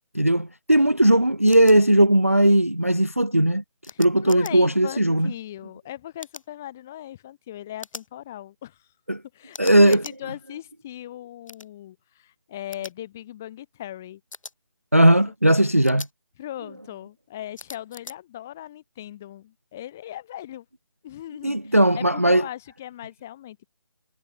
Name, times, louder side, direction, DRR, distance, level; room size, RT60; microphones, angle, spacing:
voice 1, 0.1-3.6 4.0-5.3 9.1-9.2 9.6-10.0 14.9-16.1 21.4-22.4, right 1 dB, 25° right, 0.3 m, -18 dB
sound 1, 1.5-1.7 3.8-4.5 6.2-6.5 7.8-8.1 9.5-10.2 11.5-11.7 12.7-12.9 14.3-14.5 15.8-16.1 17.6-18.1, left 3 dB, 80° left, 3.9 m, -41 dB
voice 2, 3.9-8.9 9.3-14.2 14.9-15.0 16.4-20.7 21.0-23.7, left 12 dB, 5° left, 0.7 m, -39 dB
figure-of-eight pair, 175°, 17 cm